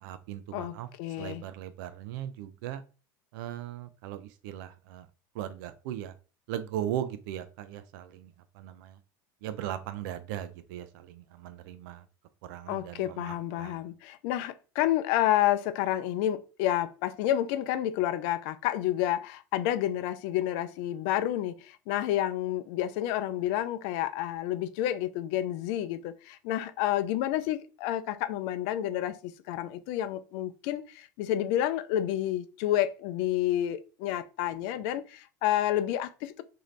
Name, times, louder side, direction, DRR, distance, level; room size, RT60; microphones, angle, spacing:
voice 1, 0.0-0.9 1.2-2.8 3.3-5.1 5.3-6.1 6.5-9.0 9.4-12.1 12.4-13.8, right 11 dB, 75° right, 0.5 m, -38 dB
voice 2, 0.5-1.4 12.7-36.4, left 12 dB, 65° left, 0.5 m, -29 dB
3.1 x 2.8 x 3.9 m
supercardioid pair, 105°, 11 cm